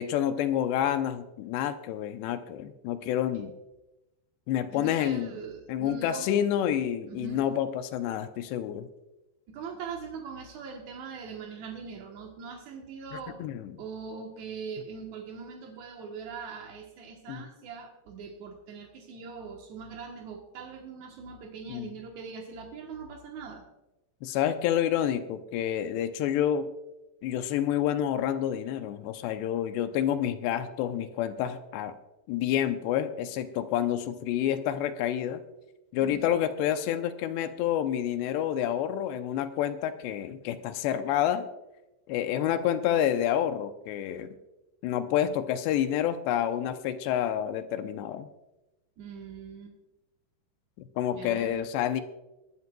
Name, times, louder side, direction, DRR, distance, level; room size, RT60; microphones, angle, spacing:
voice 1, 0.0-3.5 4.5-5.3 5.7-8.9 13.4-13.8 17.3-17.5 21.7-21.9 24.2-26.7 27.2-31.9 32.3-35.4 35.9-41.5 42.1-44.4 44.8-48.3 50.8-52.0, left 10 dB, 85° left, 9 dB, 2.7 m, -28 dB
voice 2, 4.7-6.3 7.1-7.4 9.5-13.4 13.8-23.6 36.0-36.3 49.0-49.7 51.1-51.7, right 5 dB, 75° right, 1 dB, 1.7 m, -41 dB
21.5 x 11.0 x 2.3 m, 0.97 s
omnidirectional pair, 4.9 m